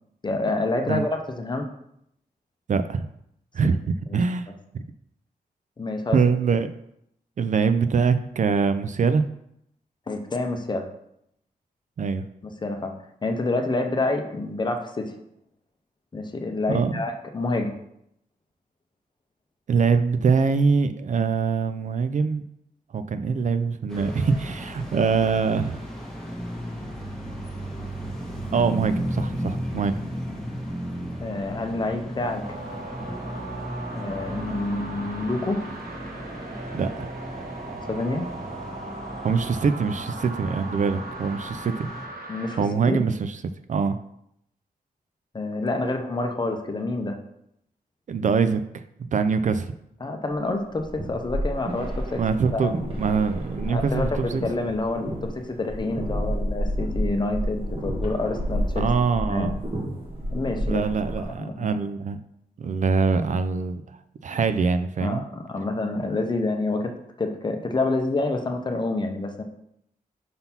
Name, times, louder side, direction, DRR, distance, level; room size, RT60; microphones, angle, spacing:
voice 1, 0.2-1.7 4.1-4.2 5.8-6.2 10.1-10.9 12.4-13.0 13.2-15.1 16.1-17.7 31.2-32.4 33.9-35.6 37.9-38.3 42.3-42.6 42.9-43.0 45.3-47.2 50.0-52.2 52.5-52.8 53.7-58.9 59.3-59.5 60.3-60.8 61.2-61.7 65.0-66.9 67.2-69.4, left 2 dB, 30° left, 4 dB, 0.7 m, -27 dB
voice 2, 2.7-3.0 3.5-4.5 6.1-6.7 7.4-9.2 12.0-12.3 16.7-16.9 19.7-22.4 22.9-25.8 28.5-29.9 36.7-37.1 39.2-41.9 42.6-43.4 43.7-44.0 48.1-48.8 49.1-49.7 52.2-54.4 58.8-59.6 60.7-62.2 62.6-63.8 64.2-65.2, right 5 dB, 55° right, 10 dB, 0.4 m, -23 dB
sound 1, 23.9-42.1, equal, 5° left, 1.3 m, -35 dB
sound 2, 32.4-42.6, right 2 dB, 70° right, 1.1 m, -38 dB
sound 3, 50.6-61.4, equal, 35° right, 1.4 m, -30 dB
5.6 x 3.9 x 5.7 m, 0.75 s
wide cardioid pair, 175°, 16 cm